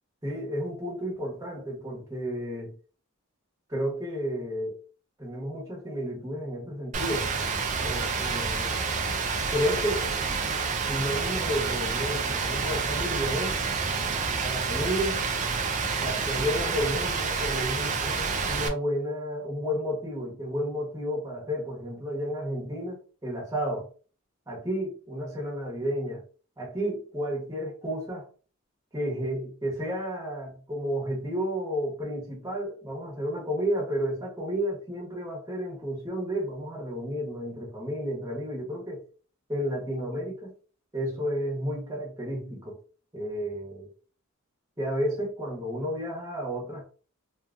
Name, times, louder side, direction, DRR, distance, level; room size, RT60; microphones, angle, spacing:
voice 1, 0.2-2.7 3.7-4.8 5.2-7.3 7.8-8.8 9.5-10.1 10.9-13.6 14.4-15.2 16.0-23.9 24.5-26.2 26.6-28.3 28.9-39.0 39.5-40.5 40.9-42.8 43.1-43.9 44.8-46.9, equal, 15° right, 1.0 m, -32 dB
Rain, 6.9-18.7, right 5 dB, 35° right, 0.4 m, -28 dB
2.7 x 2.3 x 2.5 m
head